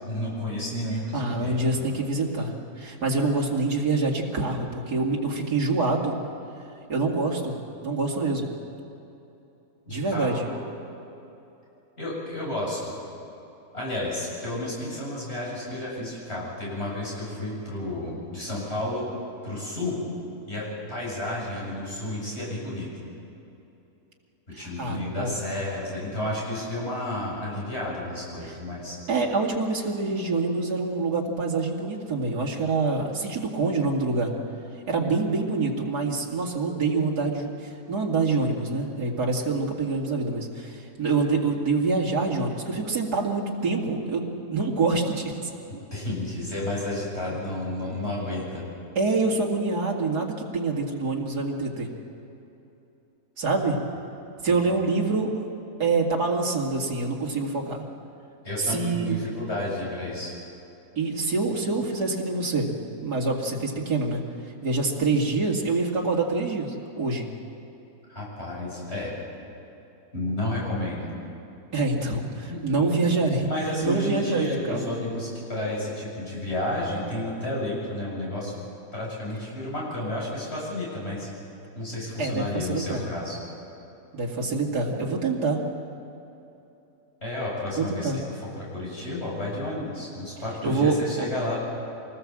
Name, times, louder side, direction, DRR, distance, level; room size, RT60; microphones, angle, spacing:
voice 1, 0.0-1.6 9.9-10.6 12.0-12.9 13.7-19.1 19.4-20.0 20.5-22.9 24.6-29.0 45.7-48.6 54.5-54.6 58.4-60.3 68.1-69.1 70.1-71.1 72.5-72.8 73.5-78.6 78.9-81.3 81.7-83.4 87.2-91.6, left 1 dB, 40° left, -5 dB, 8.1 m, -31 dB
voice 2, 1.1-6.1 6.9-8.4 9.9-10.5 24.5-25.3 28.4-28.5 29.1-34.3 34.9-45.5 48.9-51.9 53.4-53.8 54.4-55.3 55.8-57.8 58.6-59.2 61.0-64.2 64.6-67.3 71.7-73.5 73.8-74.9 82.2-83.1 84.1-85.6 87.8-88.2 90.6-91.3, right 3 dB, 80° right, -2 dB, 2.9 m, -26 dB
25.5 x 19.5 x 7.5 m, 2.9 s
omnidirectional pair, 1.7 m